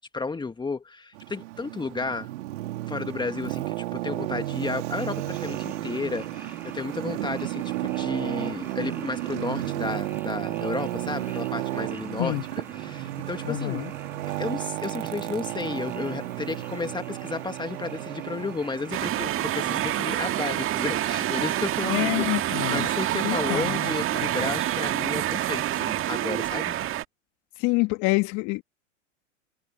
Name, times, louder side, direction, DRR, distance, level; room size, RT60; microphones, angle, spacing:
voice 1, 0.1-2.3 2.9-12.4 12.7-13.8 14.2-26.8, left 4 dB, 10° left, 1.9 m, -33 dB
Traffic noise roadway noise, 1.1-19.6, right 17 dB, 65° right, 2.9 m, -33 dB
sound 1, 5.0-19.9, right 2 dB, 5° right, 2.1 m, -46 dB
voice 2, 13.4-13.9 21.9-22.9 23.2-23.9 24.2-24.5 27.6-28.6, left 25 dB, 45° left, 1.8 m, -27 dB
sound 2, 18.9-27.0, right 13 dB, 35° right, 1.8 m, -27 dB
hypercardioid pair, 105°, 38 cm